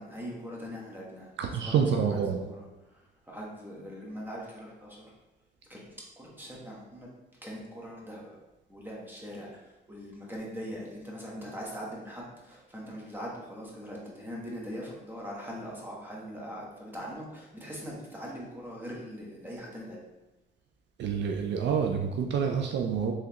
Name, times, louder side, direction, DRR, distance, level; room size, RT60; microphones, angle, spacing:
voice 1, 0.0-1.3 1.6-1.8 2.1-5.1 5.7-8.4 8.7-20.0, equal, 10° right, -3 dB, 1.1 m, -41 dB
voice 2, 1.4-2.4 21.0-23.1, right 6 dB, 65° right, 3 dB, 0.4 m, -27 dB
3.7 x 3.2 x 2.9 m, 1.0 s
cardioid pair, 90°, 20 cm